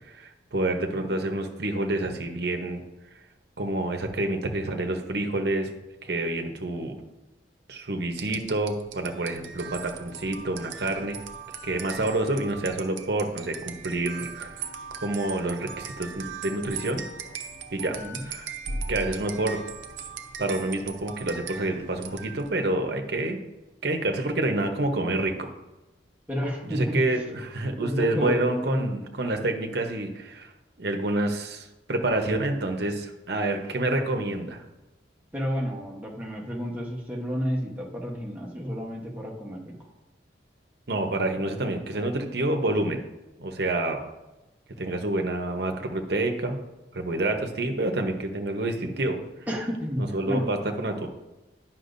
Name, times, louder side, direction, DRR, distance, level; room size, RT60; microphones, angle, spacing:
voice 1, 0.1-2.8 3.6-5.7 6.0-7.0 7.7-11.2 11.6-14.6 15.0-17.0 17.7-18.0 18.2-18.5 18.9-19.6 20.4-23.4 23.8-25.5 26.6-30.5 30.8-34.6 40.9-43.0 43.4-44.0 44.8-46.6 46.9-49.2 50.0-51.1, right 2 dB, 60° right, 4 dB, 0.9 m, -28 dB
sound 1, 8.1-22.6, right 5 dB, 90° right, 0.6 m, -39 dB
voice 2, 17.9-18.2 26.3-27.0 27.8-28.9 35.3-39.9 49.5-50.5, equal, 10° right, -2 dB, 1.1 m, -30 dB
9.8 x 5.9 x 2.6 m, 1.0 s
head